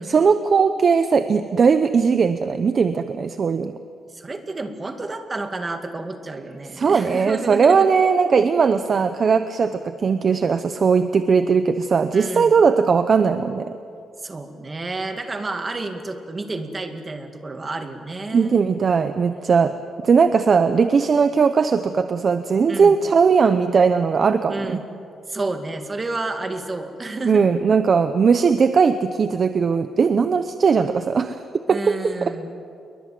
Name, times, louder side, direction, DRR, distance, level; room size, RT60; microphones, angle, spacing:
voice 1, 0.1-3.7 6.8-13.7 18.3-19.8 20.0-24.8 27.2-31.4 31.7-32.3, right 5 dB, 40° right, 10 dB, 0.8 m, -18 dB
voice 2, 4.1-7.9 12.1-12.6 14.2-18.6 22.7-23.0 24.5-24.8 25.3-27.6 31.7-32.6, right 2 dB, 20° right, 6 dB, 2.1 m, -30 dB
28.5 x 22.5 x 7.7 m, 2.5 s
cardioid pair, 155°, 0 cm